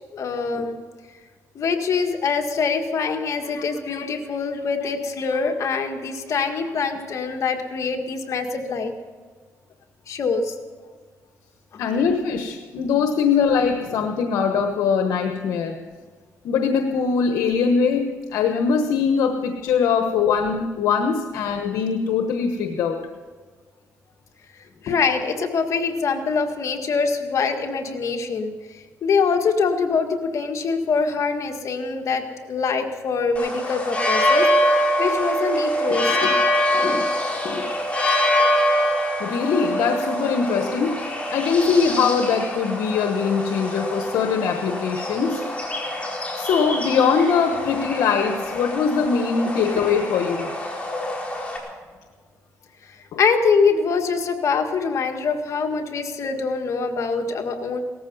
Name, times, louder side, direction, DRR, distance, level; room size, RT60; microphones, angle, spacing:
voice 1, 0.1-0.8 1.6-8.9 10.1-10.5 11.7-12.0 24.8-28.5 29.0-32.2 32.5-36.4 36.7-37.1 37.4-37.7 53.2-57.8, left 5 dB, 60° left, 4 dB, 1.8 m, -24 dB
voice 2, 11.8-15.8 16.4-23.0 39.2-40.9 41.3-45.4 46.4-50.5 53.1-53.2, left 6 dB, 85° left, 5 dB, 1.1 m, -22 dB
sound 1, 33.4-51.6, equal, 20° left, 4.5 m, -24 dB
18.0 x 14.0 x 5.5 m, 1.5 s
cardioid pair, 90°, 6 cm